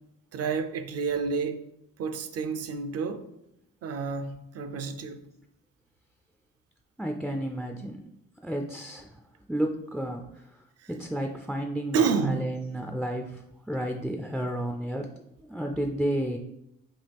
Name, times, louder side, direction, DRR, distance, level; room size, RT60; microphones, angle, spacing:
voice 1, 0.3-1.6 2.0-3.2 3.8-5.2 11.9-12.5, right 5 dB, 55° right, 0.5 m, -29 dB
voice 2, 7.0-8.0 8.4-9.2 9.5-10.4 10.9-13.4 13.7-15.1 15.5-16.4, right 1 dB, ahead, 0.3 m, -31 dB
6.0 x 2.3 x 3.4 m
cardioid pair, 90°, 30 cm